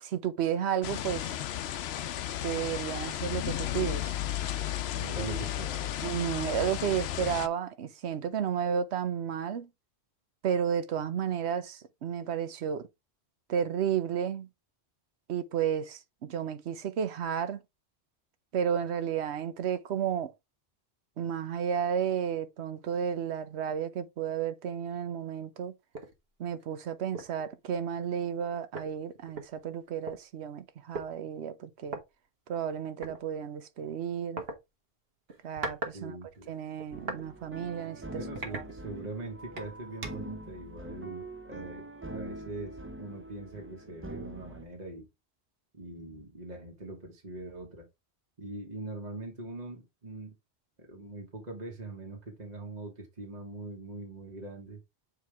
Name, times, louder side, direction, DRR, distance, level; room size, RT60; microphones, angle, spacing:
voice 1, 0.0-1.4 2.4-4.2 5.2-5.4 6.0-9.7 10.4-12.9 13.5-14.5 15.3-17.6 18.5-20.3 21.2-25.7 26.4-32.0 32.5-34.4 35.4-36.2 36.5-38.2 38.5-38.6, right 8 dB, 85° right, 1.0 m, -32 dB
sound 1, 0.8-7.5, left 12 dB, 75° left, 0.8 m, -34 dB
voice 2, 4.9-6.1 35.9-36.5 38.1-45.1 45.7-47.9 48.4-50.3 50.8-54.8, right 2 dB, 40° right, 1.6 m, -42 dB
sound 2, 25.9-26.1 26.6-26.7 27.1-27.4 28.4-28.5 28.7-30.2 30.9-31.1 31.9-32.0 33.0-33.2 34.4-34.6 35.3-36.0 36.3-37.3 37.7-37.9 38.4-39.2 39.6-40.4, right 3 dB, 65° right, 1.5 m, -39 dB
sound 3, 36.9-44.6, right 2 dB, 20° right, 0.4 m, -43 dB
6.9 x 4.6 x 3.4 m
omnidirectional pair, 1.1 m